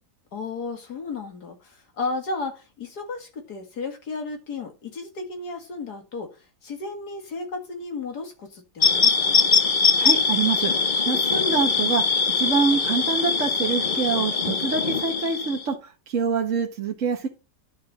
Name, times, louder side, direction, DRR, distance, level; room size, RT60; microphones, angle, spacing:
voice 1, 0.3-9.5, left 3 dB, 70° left, 2.4 m, -34 dB
sound 1, 8.8-15.6, left 5 dB, 45° left, 0.7 m, -22 dB
voice 2, 10.0-10.7 11.0-12.0 12.4-17.3, right 5 dB, 50° right, 1.5 m, -25 dB
11.0 x 4.3 x 5.3 m
omnidirectional pair, 1.8 m